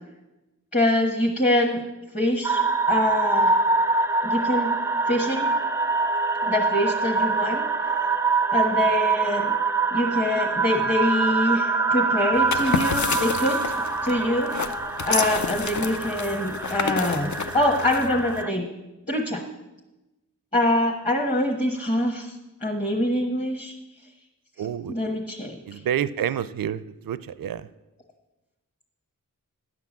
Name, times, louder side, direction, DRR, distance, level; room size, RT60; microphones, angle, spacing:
voice 1, 0.7-1.8 2.1-2.6 2.9-3.5 4.2-4.7 5.1-5.5 6.4-7.6 8.5-9.5 9.9-13.6 14.0-14.5 15.1-18.6 19.1-19.4 20.5-22.4 22.6-23.7 24.6-25.6, left 1 dB, 25° left, 0 dB, 1.4 m, -24 dB
sound 1, 2.4-18.5, right 4 dB, 5° right, 0.4 m, -25 dB
sound 2, 12.3-18.4, left 5 dB, 55° left, 0.6 m, -30 dB
voice 2, 24.6-25.0 25.7-27.6, right 9 dB, 75° right, 16 dB, 0.5 m, -28 dB
10.5 x 5.9 x 7.4 m, 1.0 s
wide cardioid pair, 45°, 34 cm